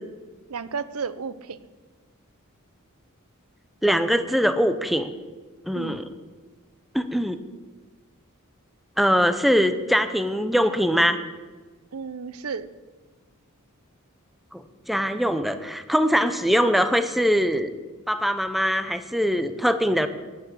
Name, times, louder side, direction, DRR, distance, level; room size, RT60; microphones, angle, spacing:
voice 1, 0.5-1.6 5.7-6.1 11.9-12.7, right 5 dB, 90° right, 14 dB, 0.7 m, -33 dB
voice 2, 3.8-5.1 5.7-6.1 6.9-7.4 9.0-11.2 14.5-17.7 18.1-20.1, equal, ahead, 10 dB, 0.6 m, -22 dB
12.5 x 9.7 x 6.9 m, 1.3 s
head